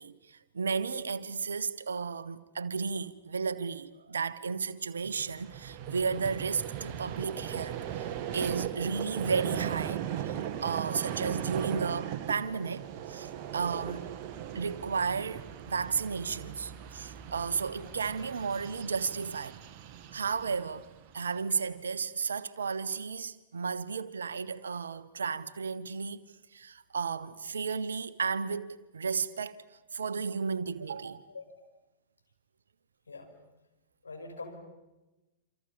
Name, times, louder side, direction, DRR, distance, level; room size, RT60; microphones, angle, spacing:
voice 1, 0.0-8.1 8.3-14.1 14.5-19.6 20.1-26.2 26.5-29.6 29.9-31.3, right 5 dB, 70° right, 1.3 m, -33 dB
Vehicle, 5.0-21.4, right 10 dB, 35° right, 1.8 m, -38 dB
voice 2, 34.0-34.6, left 3 dB, 75° left, 5.3 m, -43 dB
28.0 x 26.5 x 7.1 m
figure-of-eight pair, 100°, 0 cm